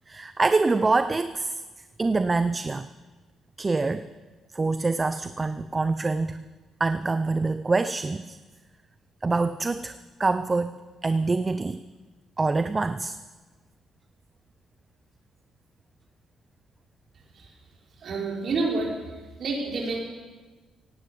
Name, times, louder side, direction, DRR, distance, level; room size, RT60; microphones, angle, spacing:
voice 1, 0.1-1.6 2.0-2.9 3.6-4.1 4.5-6.5 6.8-8.4 9.2-10.7 11.0-11.8 12.4-13.2, right 3 dB, 25° right, 12 dB, 0.5 m, -25 dB
voice 2, 18.0-20.0, right 3 dB, 60° right, -1 dB, 4.5 m, -29 dB
16.5 x 10.5 x 7.9 m, 1.3 s
cardioid pair, 90°, 0 cm